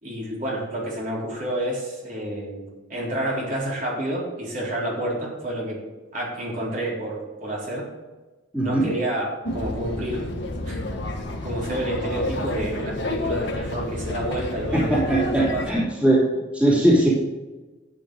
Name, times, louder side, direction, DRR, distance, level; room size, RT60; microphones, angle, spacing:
voice 1, 0.0-5.8 6.1-7.9 8.6-10.3 10.7-10.8 11.4-15.2 15.5-15.7, right 1 dB, 40° right, -5 dB, 4.0 m, -29 dB
voice 2, 8.5-8.9 14.7-16.2 16.5-17.1, right 1 dB, 5° right, -7 dB, 3.1 m, -20 dB
sound 1, 9.4-15.7, left 1 dB, 60° left, 1.6 m, -30 dB
12.0 x 9.1 x 3.9 m, 1.2 s
head